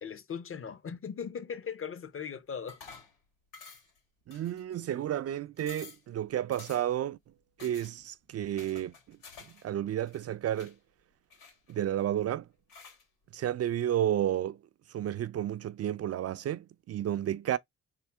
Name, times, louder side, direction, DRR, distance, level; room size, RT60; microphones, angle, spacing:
voice 1, 0.0-2.8, left 7 dB, 45° left, 0.8 m, -39 dB
sound 1, 2.7-3.2 3.5-4.0 4.3-4.9 5.3-5.4 5.6-6.1 6.5-7.0 7.6-7.9 8.6-9.6 9.9-10.7 11.3-12.0 12.7-13.0, left 5 dB, 90° left, 2.6 m, -51 dB
voice 2, 4.3-7.2 7.6-9.2 9.6-10.7 11.7-12.5 13.3-14.6 14.9-17.6, right 11 dB, 50° right, 0.4 m, -31 dB
3.7 x 2.8 x 3.3 m
supercardioid pair, 60°, 31 cm